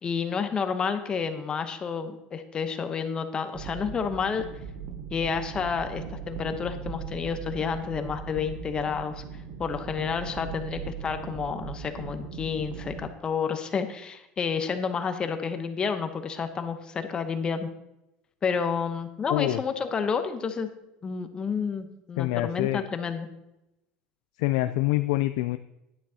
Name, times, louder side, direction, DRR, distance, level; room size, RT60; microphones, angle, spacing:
voice 1, 0.0-4.5 5.1-9.2 9.6-17.7 18.4-20.7 21.0-23.3, left 6 dB, 25° left, 8 dB, 0.8 m, -30 dB
sound 1, 3.5-13.1, right 7 dB, 55° right, 0.7 m, -39 dB
voice 2, 19.3-19.6 22.2-22.9 24.4-25.6, left 17 dB, 85° left, 11 dB, 0.3 m, -25 dB
10.0 x 9.2 x 2.8 m, 0.89 s
cardioid pair, 135°, 3 cm